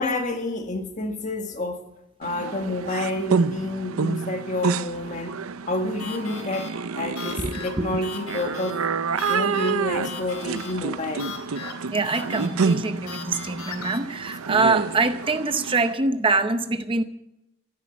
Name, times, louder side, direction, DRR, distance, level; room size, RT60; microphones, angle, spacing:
voice 1, 0.0-1.8 2.2-5.4 5.7-6.7 6.9-8.8 9.3-11.3, left 2 dB, 35° left, 5 dB, 1.7 m, -29 dB
sound 1, 2.2-15.9, right 5 dB, 80° right, 0.6 m, -29 dB
sound 2, 6.0-14.0, left 5 dB, 90° left, 2.8 m, -39 dB
voice 2, 7.4-8.0 11.9-17.0, right 3 dB, 25° right, 9 dB, 0.7 m, -24 dB
14.0 x 11.5 x 8.4 m, 0.90 s
head